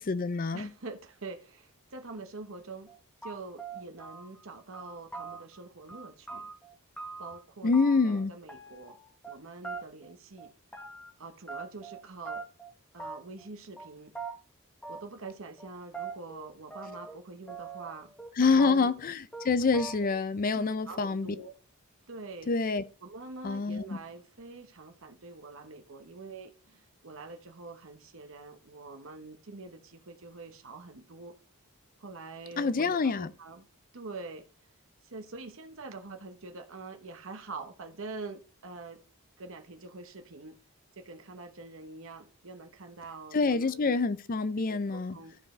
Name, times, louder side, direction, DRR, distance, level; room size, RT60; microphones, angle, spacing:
voice 1, 0.0-0.7 7.6-8.3 18.4-21.3 22.5-22.8 23.4-24.0 32.6-33.3 43.3-45.2, left 4 dB, 40° left, 0.5 m, -26 dB
voice 2, 0.5-2.9 3.2-6.5 7.2-9.0 9.2-10.5 11.2-12.4 12.9-14.1 14.9-18.9 20.4-21.6 22.1-22.5 23.0-31.3 32.0-33.7 33.9-34.5 35.0-39.0 39.4-40.6 40.9-43.9 44.7-45.4, right 3 dB, 60° right, 1.0 m, -45 dB
sound 1, 2.9-3.0 3.2-4.4 4.7-5.6 5.9-7.4 7.7-8.2 8.5-9.4 9.6-10.1 10.4-11.1 11.5-12.0 12.3-12.7 13.0-13.5 13.8-13.9 14.2-14.4 14.8-15.3 15.6-17.2 17.5-18.3 18.6-19.1 19.3-19.5 19.7-20.2, right 4 dB, 5° left, 1.1 m, -42 dB
13.5 x 4.7 x 3.1 m
head